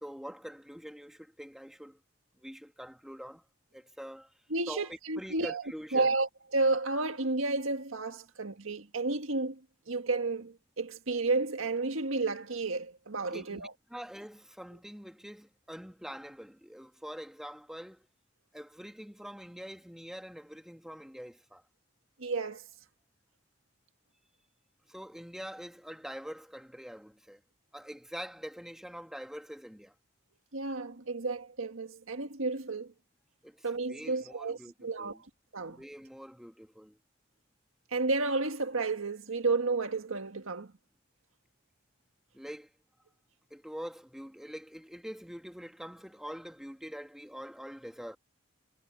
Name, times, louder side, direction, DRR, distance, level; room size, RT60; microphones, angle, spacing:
voice 1, 0.0-2.0 2.4-3.5 3.7-4.4 4.7-6.1 13.3-18.1 18.5-21.6 24.9-27.4 27.7-29.9 33.4-35.2 35.6-37.0 42.3-42.7 43.5-48.2, equal, ahead, 1.8 m, -45 dB
voice 2, 4.5-5.6 5.9-13.7 22.2-22.7 30.5-32.9 33.6-35.2 35.5-35.8 37.9-40.7, right 3 dB, 85° right, 1.7 m, -32 dB
head